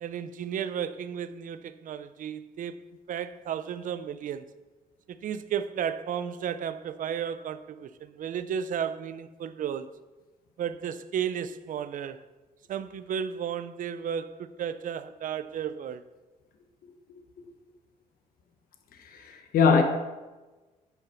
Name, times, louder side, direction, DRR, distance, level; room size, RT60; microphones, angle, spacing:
voice 1, 0.0-4.5 5.1-9.9 10.6-12.2 12.7-16.0, right 8 dB, 65° right, 0.6 m, -33 dB
voice 2, 19.1-19.8, left 5 dB, 75° left, 1.1 m, -21 dB
10.5 x 5.8 x 5.8 m
cardioid pair, 120°, 15 cm